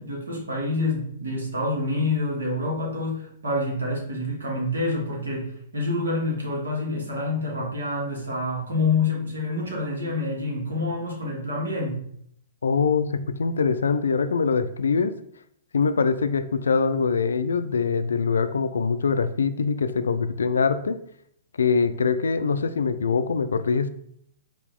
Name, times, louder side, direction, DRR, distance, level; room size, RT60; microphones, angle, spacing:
voice 1, 0.0-12.0, left 2 dB, 85° right, -2 dB, 1.6 m, -27 dB
voice 2, 12.6-15.1 15.7-21.0 21.6-23.9, left 5 dB, 85° left, 12 dB, 0.3 m, -23 dB
4.4 x 3.0 x 3.5 m, 0.68 s
hypercardioid pair, 125°, 0 cm